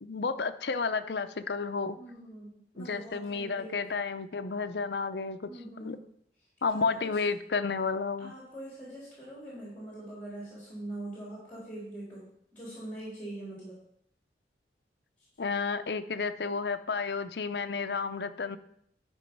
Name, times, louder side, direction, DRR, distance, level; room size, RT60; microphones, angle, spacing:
voice 1, 0.0-2.0 2.8-5.5 5.8-6.0 6.6-8.3 15.4-18.6, left 4 dB, 70° left, 9 dB, 0.6 m, -31 dB
voice 2, 2.0-3.7 5.4-6.0 6.7-7.1 8.2-13.8, right 1 dB, 10° left, -7 dB, 3.5 m, -43 dB
11.0 x 5.3 x 5.3 m, 0.69 s
head